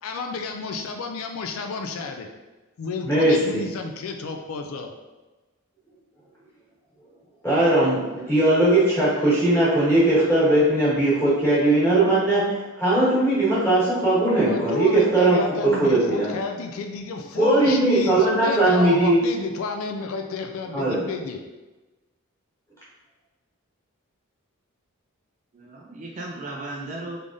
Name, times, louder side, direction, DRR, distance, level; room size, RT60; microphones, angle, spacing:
voice 1, 0.0-2.3 2.8-4.9 14.3-21.4, left 4 dB, 75° left, 4 dB, 0.3 m, -31 dB
voice 2, 3.0-3.6 7.4-8.0 8.3-16.3 17.4-19.2 20.7-21.0, right 2 dB, 10° left, -10 dB, 1.4 m, -19 dB
voice 3, 8.1-8.4 8.8-8.9 15.9-16.0 25.5-27.2, right 2 dB, 35° right, -2 dB, 0.3 m, -36 dB
3.6 x 3.3 x 2.6 m, 1.2 s
head